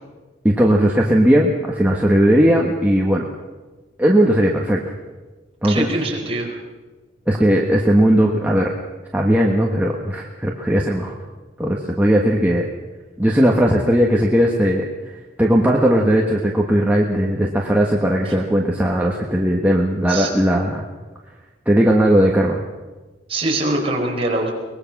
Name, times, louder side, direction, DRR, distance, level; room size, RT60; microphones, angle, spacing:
voice 1, 0.4-3.3 4.0-4.8 5.6-5.9 7.3-8.7 9.1-11.1 11.6-12.6 13.2-14.8 15.4-20.8 21.6-22.6, equal, 10° right, -1 dB, 1.4 m, -17 dB
voice 2, 5.7-6.5 18.2-18.3 20.1-20.3 23.3-24.5, right 2 dB, 30° right, -1 dB, 4.3 m, -23 dB
23.0 x 20.5 x 6.1 m, 1.3 s
head